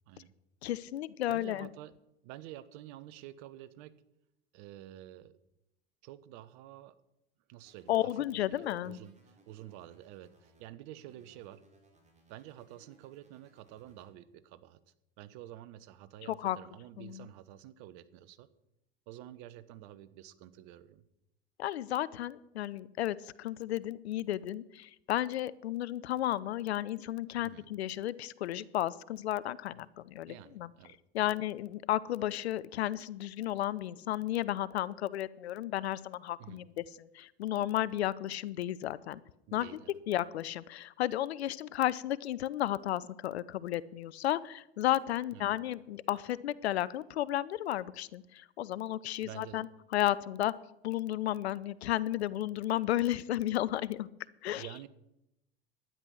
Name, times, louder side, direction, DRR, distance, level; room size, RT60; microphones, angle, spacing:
voice 1, 0.6-1.7 7.9-9.0 16.2-16.6 17.0-17.3 21.6-30.7 31.1-39.2 39.5-39.7 40.1-50.5 50.8-54.1 54.4-54.7, left 13 dB, 80° left, 19 dB, 0.6 m, -33 dB
voice 2, 1.3-1.9 2.2-4.0 4.5-5.4 6.0-7.0 7.5-8.3 8.5-11.6 12.3-14.8 15.2-18.5 19.1-21.0 27.4-27.7 30.3-31.3 36.4-36.6 39.5-40.0 45.3-45.5 49.2-49.7 54.5-54.9, right 13 dB, 55° right, 16 dB, 1.0 m, -49 dB
sound 1, 7.7-10.7 11.1-14.1, right 2 dB, 20° right, 3.7 m, -65 dB
12.0 x 9.9 x 6.2 m, 0.86 s
hypercardioid pair, 85°, 32 cm